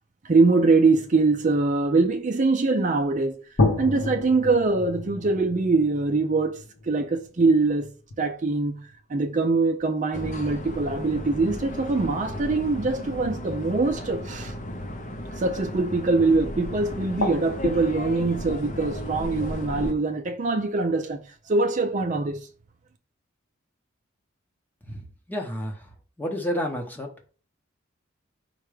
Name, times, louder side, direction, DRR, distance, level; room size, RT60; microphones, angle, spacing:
voice 1, 0.2-3.4 3.8-7.9 8.2-14.5 15.4-21.2 21.5-22.4, right 3 dB, 40° right, 0.5 m, -23 dB
sound 1, 3.6-8.9 9.8-9.9 11.0-11.1 11.4-11.9 16.5-16.7 16.9-20.2, left 2 dB, 75° left, 0.8 m, -32 dB
sound 2, 10.1-19.9, left 1 dB, 40° left, 0.5 m, -35 dB
voice 2, 25.3-25.9 26.2-27.1, equal, 10° left, 0.8 m, -30 dB
4.8 x 2.2 x 4.8 m
head